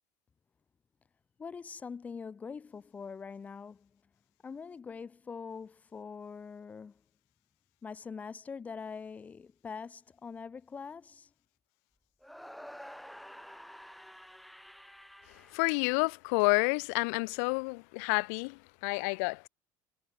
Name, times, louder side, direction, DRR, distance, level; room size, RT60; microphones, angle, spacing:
voice 1, 1.4-3.9 4.4-7.0 7.8-11.3, left 5 dB, 20° left, 2.6 m, -43 dB
sound 1, 12.2-16.4, equal, ahead, 7.2 m, -50 dB
voice 2, 15.5-19.5, left 33 dB, 80° left, 0.7 m, -29 dB
cardioid pair, 160°, 8 cm